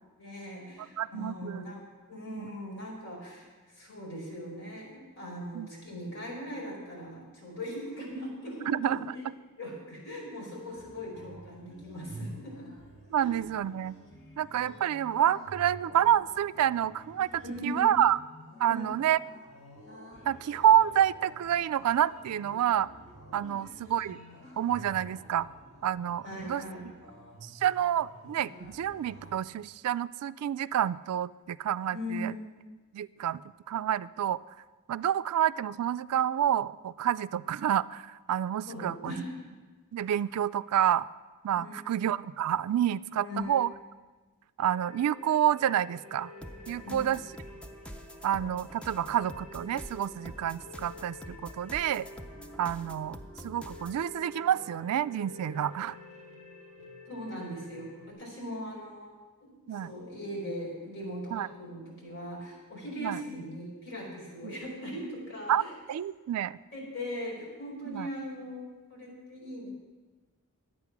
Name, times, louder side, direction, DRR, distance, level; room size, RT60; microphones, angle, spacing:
voice 1, 0.2-9.2 9.5-12.7 13.2-13.3 17.4-17.9 18.6-18.9 23.5-23.7 26.2-26.8 31.9-32.4 38.7-39.3 41.6-41.9 43.2-43.6 46.8-47.0 57.1-59.1 59.4-65.7 66.7-69.7, equal, 55° left, -3 dB, 4.5 m, -40 dB
voice 2, 1.0-1.6 2.3-2.5 5.5-5.7 8.7-9.0 13.1-14.0 14.4-18.2 18.6-19.2 20.3-22.9 23.3-24.2 24.6-25.5 25.8-26.6 27.4-32.3 32.9-33.4 33.7-34.4 34.9-39.2 39.9-41.1 41.4-43.7 44.6-46.3 46.7-47.2 48.2-52.1 52.6-53.2 53.4-56.0 59.7-59.9 61.3-61.5 63.0-63.2 64.4-64.5 65.5-65.6 65.9-66.6 67.9-68.1, right 10 dB, 80° right, 16 dB, 0.3 m, -28 dB
sound 1, 10.6-29.4, right 1 dB, 70° left, 4.3 m, -50 dB
sound 2, 44.6-58.1, left 2 dB, 30° left, 2.4 m, -49 dB
sound 3, 46.4-54.0, equal, 5° left, 0.5 m, -47 dB
11.5 x 8.6 x 5.9 m, 1.3 s
head